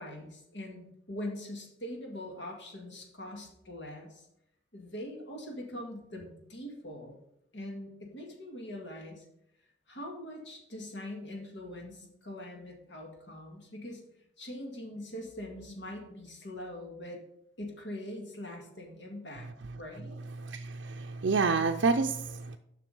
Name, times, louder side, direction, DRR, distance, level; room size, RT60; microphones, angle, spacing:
voice 1, 0.0-4.3 4.7-7.2 7.5-9.2 9.9-14.0 14.4-17.2 17.6-19.5 19.7-20.2, left 1 dB, 75° left, 1 dB, 2.0 m, -42 dB
voice 2, 20.4-22.6, right 4 dB, 75° right, 3 dB, 0.5 m, -28 dB
7.4 x 5.9 x 5.4 m, 0.78 s
head